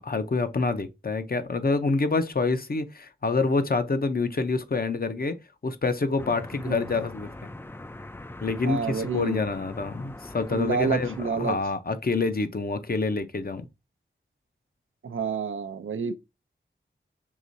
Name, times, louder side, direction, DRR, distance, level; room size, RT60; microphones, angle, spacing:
voice 1, 0.0-5.4 5.6-7.5 8.4-13.7, left 3 dB, 50° left, 0.7 m, -27 dB
sound 1, 6.2-11.3, left 2 dB, 10° left, 0.3 m, -42 dB
voice 2, 8.6-9.4 10.5-11.6 15.0-16.2, right 5 dB, 90° right, 0.5 m, -28 dB
4.8 x 3.0 x 2.6 m
wide cardioid pair, 70°, 20 cm